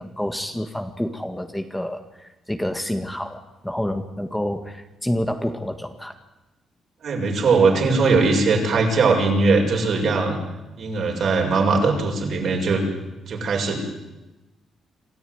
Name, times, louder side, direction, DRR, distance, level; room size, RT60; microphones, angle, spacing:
voice 1, 0.0-6.1, left 1 dB, 5° left, 6 dB, 1.8 m, -28 dB
voice 2, 7.0-10.4 10.8-12.8 13.3-13.8, right 4 dB, 60° right, 1 dB, 6.5 m, -20 dB
27.0 x 14.0 x 9.6 m, 1.0 s
cardioid pair, 90°, 0 cm